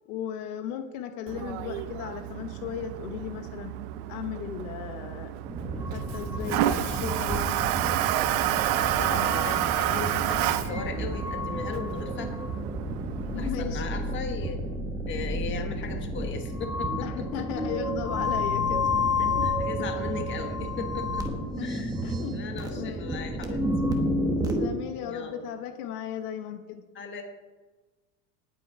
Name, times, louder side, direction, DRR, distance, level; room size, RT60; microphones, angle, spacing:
voice 1, 0.1-3.7 4.1-5.3 5.9-7.9 13.3-13.8 17.0-18.9 19.2-19.5 19.8-20.0 21.6-22.4 22.7-23.1 24.4-26.8, left 9 dB, 75° left, 8 dB, 1.2 m, -36 dB
Toilet flush, 1.3-13.5, right 13 dB, 75° right, 0.9 m, -30 dB
sound 1, 5.4-24.7, left 1 dB, 10° right, 1.0 m, -30 dB
voice 2, 8.7-12.3 13.3-14.6 15.1-17.2 19.4-21.2 21.6-23.6 25.0-25.5 26.9-27.2, left 5 dB, 25° left, 5 dB, 1.5 m, -37 dB
19.0 x 8.4 x 4.7 m, 1.3 s
cardioid pair, 165°, 45 cm